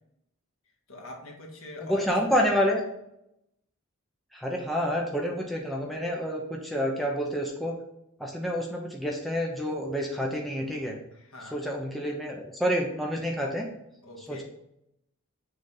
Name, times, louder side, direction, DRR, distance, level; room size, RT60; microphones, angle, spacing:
voice 1, 0.9-2.5 11.1-11.6 14.0-14.4, left 2 dB, 70° left, 0 dB, 1.6 m, -42 dB
voice 2, 1.8-2.8 4.3-7.8 8.2-11.0 11.5-13.7 14.3-14.4, equal, ahead, -1 dB, 0.7 m, -28 dB
6.6 x 3.5 x 5.4 m, 0.79 s
head